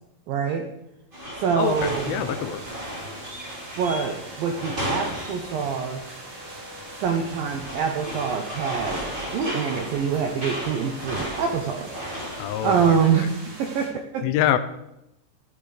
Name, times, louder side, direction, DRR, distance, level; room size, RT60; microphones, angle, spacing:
voice 1, 0.3-0.7 1.3-2.3 3.8-6.0 6.9-9.0 9.3-12.0 12.6-14.3, right 6 dB, 80° right, 3 dB, 2.1 m, -25 dB
sound 1, 1.1-13.0, equal, 10° right, 3.0 m, -35 dB
voice 2, 1.6-2.6 12.4-13.0 14.2-14.6, left 11 dB, 85° left, 11 dB, 3.4 m, -25 dB
sound 2, 1.6-13.9, right 2 dB, 50° right, 6.7 m, -42 dB
15.0 x 12.5 x 5.1 m, 0.85 s
omnidirectional pair, 5.7 m